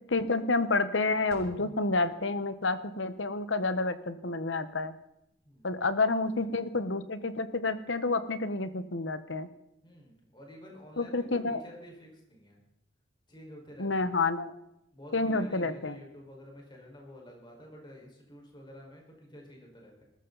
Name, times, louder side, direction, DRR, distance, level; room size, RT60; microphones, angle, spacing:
voice 1, 0.1-4.9 5.6-9.5 11.0-11.6 13.8-14.5 15.1-16.0, left 3 dB, 70° left, 12 dB, 1.2 m, -29 dB
sound 1, 1.3-3.3, equal, 55° right, 4.5 m, -51 dB
voice 2, 5.4-6.7 9.8-12.6 13.3-14.1 14.9-20.0, equal, 25° left, -1 dB, 5.1 m, -50 dB
20.0 x 14.0 x 4.1 m, 0.81 s
head